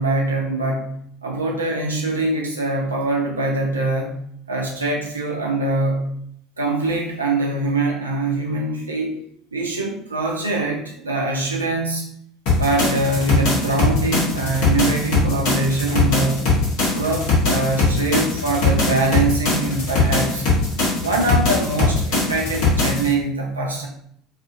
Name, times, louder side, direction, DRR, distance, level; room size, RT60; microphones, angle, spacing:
voice 1, 0.0-4.2 4.5-6.1 6.6-9.2 9.5-12.0 12.6-16.6 16.9-20.4 21.0-23.9, right 2 dB, 80° right, 0 dB, 0.5 m, -23 dB
sound 1, 12.5-23.1, left 3 dB, 55° left, 0.9 m, -21 dB
2.4 x 2.4 x 2.4 m, 0.66 s
figure-of-eight pair, 65°, 0 cm